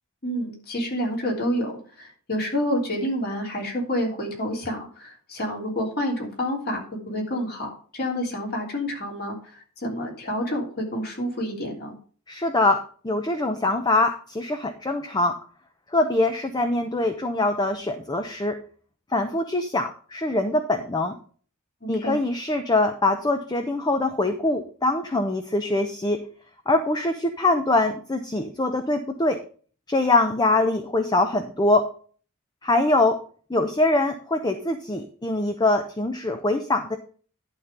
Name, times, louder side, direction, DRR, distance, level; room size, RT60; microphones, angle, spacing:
voice 1, 0.2-1.7 2.0-9.4 9.8-11.9 21.8-22.2, equal, 45° left, -1 dB, 3.1 m, -28 dB
voice 2, 12.3-15.4 15.9-18.6 19.1-21.1 21.9-26.3 26.7-29.4 29.9-31.9 32.6-33.2 33.5-37.0, left 2 dB, 20° left, 7 dB, 0.7 m, -23 dB
11.5 x 3.8 x 6.7 m, 0.42 s
head